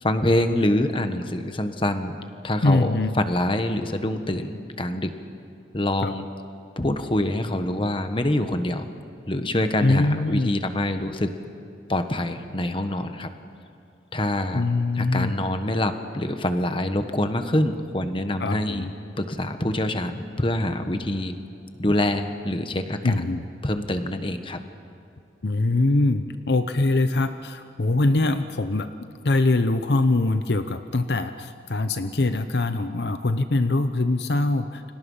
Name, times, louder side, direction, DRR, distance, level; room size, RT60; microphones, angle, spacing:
voice 1, 0.0-2.1 2.4-5.1 5.7-6.3 6.8-8.9 9.3-11.3 11.9-13.3 14.1-14.6 15.0-18.9 19.2-21.3 21.8-23.1 23.6-24.6, left 1 dB, 30° left, 8 dB, 1.3 m, -25 dB
voice 2, 2.6-3.2 6.0-6.1 9.8-10.5 14.5-15.4 18.4-18.9 23.0-23.4 25.4-34.9, left 2 dB, 65° left, 9 dB, 0.8 m, -23 dB
30.0 x 25.0 x 5.6 m, 2.6 s
head